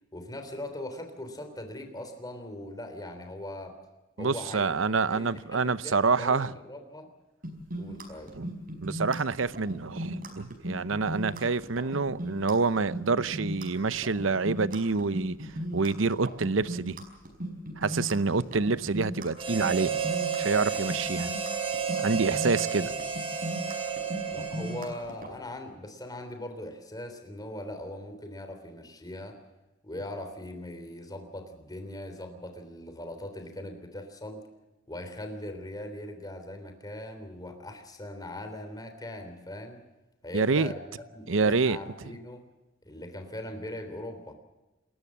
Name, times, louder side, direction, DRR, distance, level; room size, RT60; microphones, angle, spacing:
voice 1, 0.1-3.8 4.2-4.7 5.1-7.1 7.8-8.3 24.3-29.4 29.8-34.4 34.9-39.8 40.2-40.8 41.1-42.4 42.8-44.3, left 1 dB, 20° left, 3.4 m, -40 dB
voice 2, 4.2-6.5 8.4-8.5 8.8-15.4 15.7-17.0 17.8-20.0 20.4-21.3 22.0-22.9 40.3-40.7 41.3-41.8, right 4 dB, 70° right, 0.8 m, -27 dB
sound 1, 7.4-25.3, equal, 45° right, 5.3 m, -37 dB
Harmonica, 19.4-25.2, right 6 dB, 30° right, 3.6 m, -32 dB
28.5 x 14.0 x 7.4 m
head